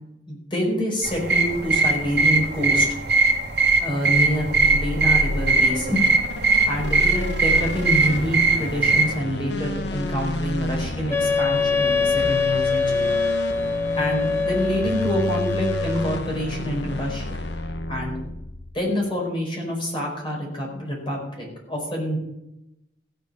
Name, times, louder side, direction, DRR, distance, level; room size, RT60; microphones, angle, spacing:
voice 1, 0.3-2.9 3.8-6.0 6.7-13.1 13.9-17.4 17.9-18.1 18.7-22.2, equal, 30° left, -1 dB, 4.8 m, -27 dB
sound 1, 1.0-9.2, right 3 dB, 65° right, 2.3 m, -21 dB
sound 2, 4.3-18.8, left 1 dB, 75° left, 1.2 m, -31 dB
Wind instrument woodwind instrument, 11.1-16.2, left 4 dB, 15° left, 0.6 m, -23 dB
15.5 x 8.3 x 5.6 m, 0.87 s
head